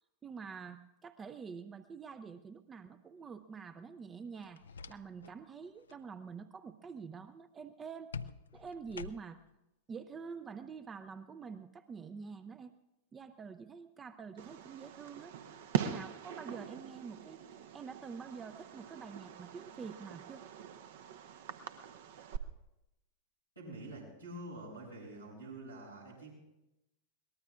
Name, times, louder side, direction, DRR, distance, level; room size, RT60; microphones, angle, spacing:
voice 1, 0.2-4.6 4.9-8.1 8.5-9.4 9.9-12.7 13.1-15.3 15.8-17.4 17.7-20.4, right 5 dB, 20° right, 11 dB, 0.5 m, -47 dB
sound 1, 4.4-5.4 5.7-6.0 8.1-9.5, left 5 dB, 70° left, 0.4 m, -47 dB
Fireworks, 14.4-22.4, right 10 dB, 55° right, 0.8 m, -42 dB
voice 2, 23.6-26.3, right 1 dB, 85° right, -5 dB, 7.3 m, -47 dB
22.5 x 19.5 x 2.4 m, 0.94 s
figure-of-eight pair, 90°, 0 cm